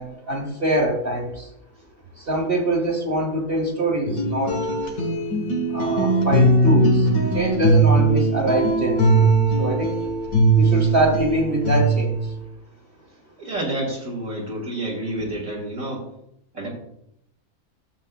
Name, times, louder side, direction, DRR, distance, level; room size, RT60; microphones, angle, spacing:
voice 1, 0.0-1.5 2.1-4.6 5.7-7.1 7.3-9.3 9.6-10.0 10.5-12.3, right 1 dB, 40° right, -2 dB, 1.8 m, -24 dB
sound 1, 4.1-12.3, right 2 dB, 70° left, 2.0 m, -19 dB
voice 2, 13.4-16.0 16.5-16.7, right 1 dB, 60° right, -4 dB, 2.4 m, -29 dB
14.5 x 7.4 x 2.3 m, 0.77 s
omnidirectional pair, 1.6 m